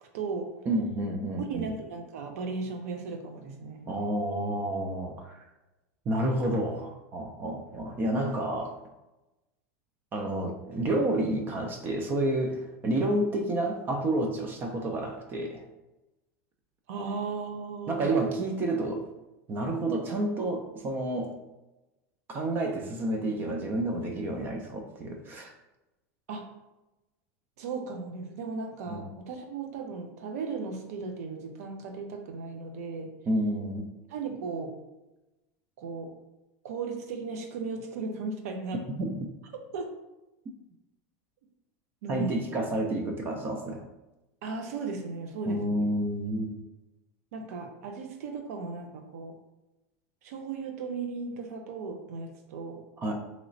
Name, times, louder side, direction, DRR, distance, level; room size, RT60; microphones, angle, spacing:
voice 1, 0.0-0.5 1.4-3.8 16.9-18.2 26.3-26.4 27.6-33.1 34.1-34.7 35.8-36.1 36.6-38.8 39.7-39.9 42.0-42.4 44.4-45.9 47.3-49.4 50.2-52.8, right 4 dB, 80° right, 5 dB, 0.6 m, -36 dB
voice 2, 0.7-1.7 3.9-5.4 6.1-8.7 10.1-15.6 17.9-19.0 19.5-21.3 22.3-25.5 28.9-29.0 33.3-33.9 39.0-39.2 42.1-43.8 45.5-46.5 53.0-53.1, right 1 dB, 25° right, 3 dB, 0.4 m, -30 dB
3.0 x 2.9 x 2.6 m, 1.0 s
supercardioid pair, 155°, 8 cm